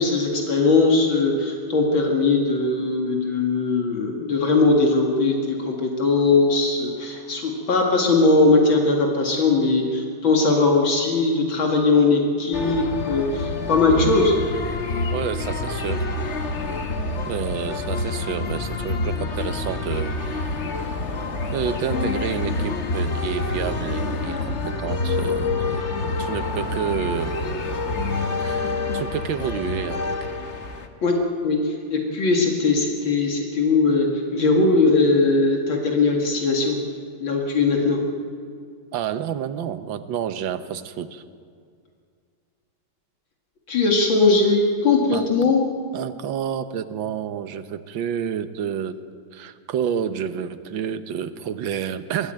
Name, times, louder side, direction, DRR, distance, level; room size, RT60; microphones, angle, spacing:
voice 1, 0.0-14.3 31.0-31.2 31.4-36.8 37.2-38.0 43.7-45.7, left 3 dB, 70° left, 1 dB, 2.7 m, -20 dB
sound 1, 12.5-30.9, left 3 dB, 40° left, 1.5 m, -27 dB
voice 2, 15.1-16.1 17.3-20.2 21.5-27.4 28.4-30.1 38.9-41.2 45.1-45.5 45.9-49.0 49.3-52.3, right 8 dB, 70° right, 11 dB, 1.7 m, -29 dB
23.0 x 16.5 x 9.0 m, 2.2 s
omnidirectional pair, 2.2 m